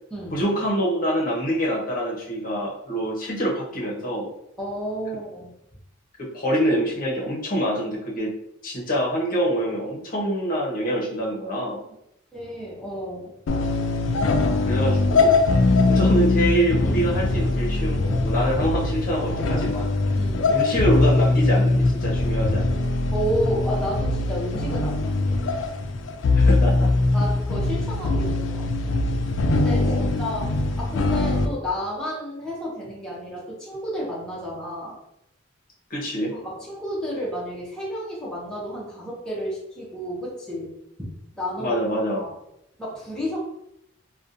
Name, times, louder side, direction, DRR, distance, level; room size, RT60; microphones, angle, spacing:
voice 1, 0.3-4.3 6.2-8.3 8.6-11.8 14.6-15.4 15.9-19.9 20.5-22.9 26.4-26.9 29.8-30.0 35.9-36.3 41.6-42.2, right 1 dB, 45° left, -3 dB, 0.7 m, -25 dB
voice 2, 4.6-5.5 12.3-13.3 15.7-16.0 20.1-20.6 23.1-25.4 27.1-28.9 29.5-35.0 36.3-40.7 41.3-41.8 42.2-42.3 42.8-43.4, equal, 5° left, -6 dB, 0.6 m, -31 dB
sound 1, 13.5-31.5, left 2 dB, 75° left, 0.4 m, -22 dB
2.6 x 2.1 x 2.5 m, 0.79 s
head